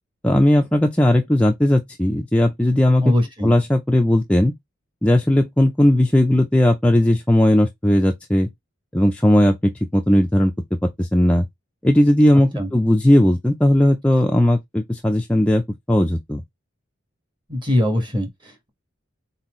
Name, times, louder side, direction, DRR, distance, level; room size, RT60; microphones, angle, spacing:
voice 1, 0.2-3.1 3.4-4.5 5.0-8.5 8.9-10.5 11.0-11.5 11.8-15.6 15.9-16.4, left 1 dB, 5° left, 0.4 m, -17 dB
voice 2, 3.0-3.5 12.5-12.7 17.5-18.7, left 1 dB, 25° right, 1.3 m, -22 dB
4.2 x 3.9 x 3.0 m
head